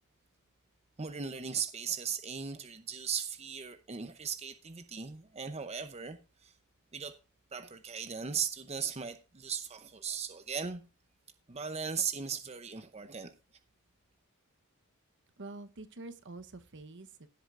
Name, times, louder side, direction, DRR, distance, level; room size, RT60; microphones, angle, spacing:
voice 1, 1.0-6.5 6.9-7.2 7.5-10.8 11.5-13.4, right 6 dB, 30° right, 0.7 m, -37 dB
voice 2, 15.4-17.3, right 2 dB, 55° right, 0.9 m, -46 dB
17.0 x 8.0 x 2.5 m
head